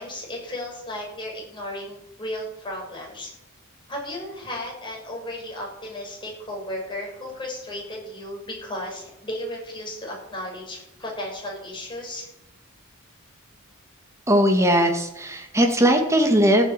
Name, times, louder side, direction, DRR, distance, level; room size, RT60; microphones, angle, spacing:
voice 1, 0.0-3.3 3.9-12.3, left 1 dB, 20° left, -1 dB, 6.7 m, -34 dB
voice 2, 14.3-16.7, equal, 15° right, 3 dB, 2.5 m, -19 dB
15.5 x 9.1 x 9.2 m, 0.84 s
head